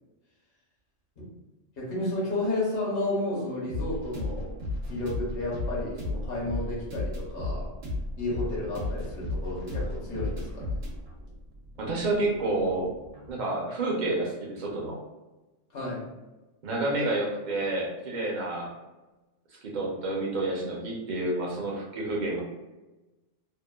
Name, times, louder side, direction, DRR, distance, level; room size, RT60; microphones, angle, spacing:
voice 1, 1.8-4.6 4.9-7.7 8.2-10.8 15.7-16.1, left 2 dB, 55° left, -5 dB, 1.1 m, -32 dB
sound 1, 3.7-13.3, left 2 dB, 85° right, 1.1 m, -34 dB
voice 2, 11.8-12.9 13.3-15.0 16.6-18.7 19.6-22.4, right 2 dB, 50° right, -3 dB, 0.6 m, -29 dB
2.8 x 2.2 x 2.2 m, 1.1 s
omnidirectional pair, 1.3 m